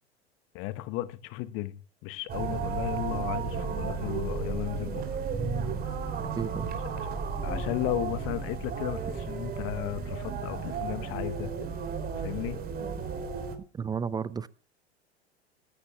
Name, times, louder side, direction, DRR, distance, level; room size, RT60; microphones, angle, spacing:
voice 1, 0.5-5.0 6.9-7.1 7.4-11.5 12.2-12.6, left 16 dB, 40° left, 1.1 m, -35 dB
sound 1, 2.3-13.6, right 5 dB, 30° right, 3.2 m, -33 dB
voice 2, 6.4-6.8 13.7-14.5, right 6 dB, 10° right, 0.5 m, -33 dB
20.5 x 15.0 x 2.3 m
figure-of-eight pair, 85°, 33 cm